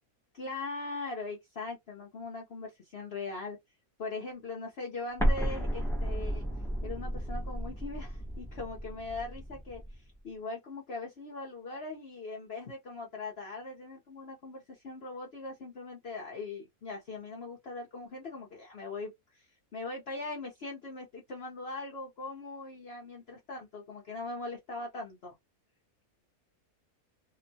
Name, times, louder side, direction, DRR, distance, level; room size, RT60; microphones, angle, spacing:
voice 1, 0.3-3.6 4.0-6.4 6.8-19.5 19.7-25.3, left 3 dB, 55° left, 0.8 m, -40 dB
Explosion, 5.2-10.0, equal, 5° left, 0.7 m, -33 dB
2.9 x 2.1 x 2.7 m
omnidirectional pair, 1.5 m